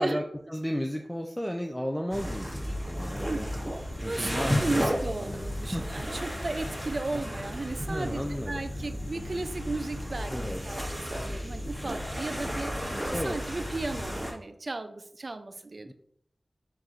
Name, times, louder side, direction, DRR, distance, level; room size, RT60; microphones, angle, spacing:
voice 1, 0.0-3.5 4.0-6.0 7.1-7.2 7.8-8.7 10.3-10.8 13.1-13.4 15.9-16.0, equal, 10° left, 3 dB, 0.4 m, -34 dB
sound 1, 2.1-14.3, equal, 15° right, 1.6 m, -33 dB
voice 2, 3.3-15.9, right 2 dB, 60° right, 9 dB, 0.4 m, -35 dB
4.7 x 2.6 x 4.3 m, 0.67 s
cardioid pair, 45°, 0 cm